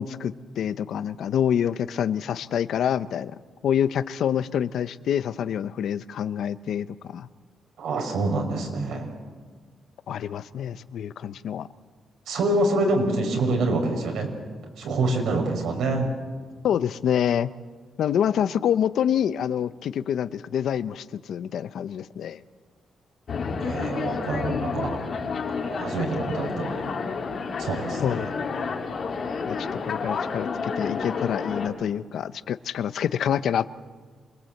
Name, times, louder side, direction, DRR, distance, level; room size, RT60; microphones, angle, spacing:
voice 1, 0.0-3.3 3.6-7.3 10.1-11.7 16.6-17.5 18.0-22.4 28.0-28.3 29.5-33.7, left 9 dB, 70° left, 14 dB, 0.7 m, -26 dB
voice 2, 7.8-9.1 12.3-14.3 14.8-16.1 23.6-25.0 25.5-26.9 27.6-28.3, right 2 dB, 90° right, 3 dB, 5.7 m, -26 dB
sound 1, 23.3-31.7, left 5 dB, 45° left, 2.5 m, -30 dB
27.5 x 21.5 x 7.9 m, 1.5 s
wide cardioid pair, 175°, 0 cm